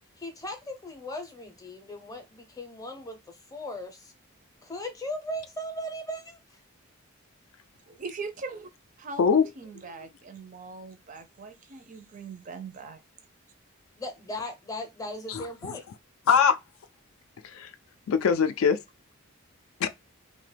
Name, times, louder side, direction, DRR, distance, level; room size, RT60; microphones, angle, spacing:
voice 1, 0.2-4.1 4.6-6.6 14.0-15.8, left 1 dB, 15° left, 0.5 m, -38 dB
voice 2, 7.9-8.7 9.0-9.2 9.6-13.0, right 4 dB, 35° right, 0.4 m, -41 dB
voice 3, 9.2-9.5 15.3-15.8 16.3-16.6 17.4-17.7 18.1-18.8 19.8-19.9, left 6 dB, 70° left, 0.3 m, -22 dB
2.8 x 2.1 x 3.2 m
head